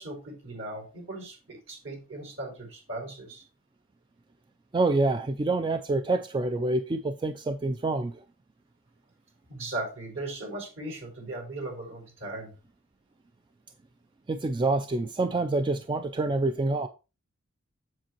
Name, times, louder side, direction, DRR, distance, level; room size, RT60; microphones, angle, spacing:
voice 1, 0.0-3.4 9.5-12.5, right 2 dB, 60° right, 4.4 m, -38 dB
voice 2, 4.7-8.2 14.3-16.9, right 2 dB, 20° right, 0.3 m, -27 dB
7.6 x 7.5 x 2.9 m
head